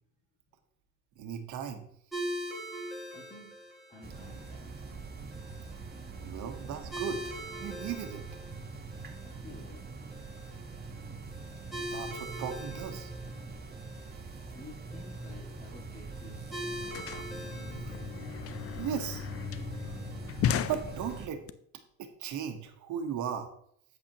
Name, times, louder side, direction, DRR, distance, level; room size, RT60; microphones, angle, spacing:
voice 1, 1.2-1.9 6.2-7.3 7.6-8.2 11.9-13.1 18.8-19.3 20.7-21.4 22.0-23.5, right 8 dB, 65° right, 5 dB, 1.2 m, -36 dB
sound 1, 2.1-21.3, equal, ahead, 3.1 m, -44 dB
voice 2, 3.1-3.5 3.9-4.7 9.2-9.8 14.5-17.1, left 3 dB, 20° left, -4 dB, 2.0 m, -51 dB
sound 2, 4.0-21.3, right 3 dB, 30° right, 1.2 m, -43 dB
sound 3, 16.0-16.1 16.3-21.5, left 9 dB, 45° left, 0.5 m, -36 dB
8.6 x 8.2 x 2.9 m, 0.68 s
cardioid pair, 120°, 32 cm